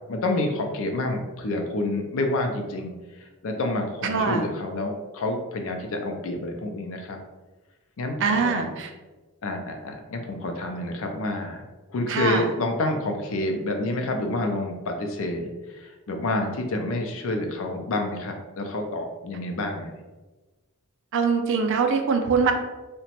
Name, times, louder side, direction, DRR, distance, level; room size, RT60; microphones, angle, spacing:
voice 1, 0.1-2.9 3.2-7.2 8.0-8.7 9.4-11.6 11.9-19.9, left 2 dB, 65° left, 4 dB, 0.4 m, -28 dB
voice 2, 4.0-4.5 8.2-8.9 12.1-12.5 21.1-22.5, right 5 dB, 55° right, 5 dB, 0.3 m, -23 dB
2.9 x 2.1 x 2.8 m, 1.2 s
head